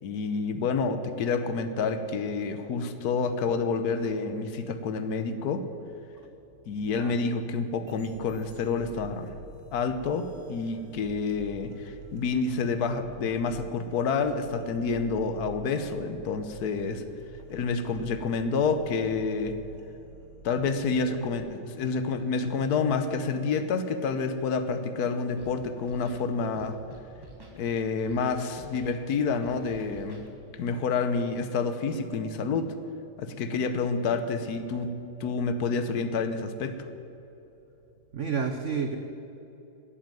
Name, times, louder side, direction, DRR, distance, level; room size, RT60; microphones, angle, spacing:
voice 1, 0.0-5.7 6.7-9.3 9.7-17.0 17.5-19.6 20.4-26.8 27.5-30.2 30.5-32.7 33.2-36.8, left 4 dB, 60° left, 9 dB, 1.1 m, -28 dB
voice 2, 6.8-7.2 38.1-39.0, right 5 dB, 90° right, 6 dB, 0.6 m, -30 dB
sound 1, 7.9-21.4, right 6 dB, 60° right, 2.3 m, -49 dB
Scratching (performance technique), 25.4-25.5 25.8-26.2 26.6-27.6 28.1-28.2 28.5-28.9 29.4-30.3, right 2 dB, 15° right, 1.2 m, -48 dB
13.0 x 8.6 x 9.1 m, 2.9 s
omnidirectional pair, 2.4 m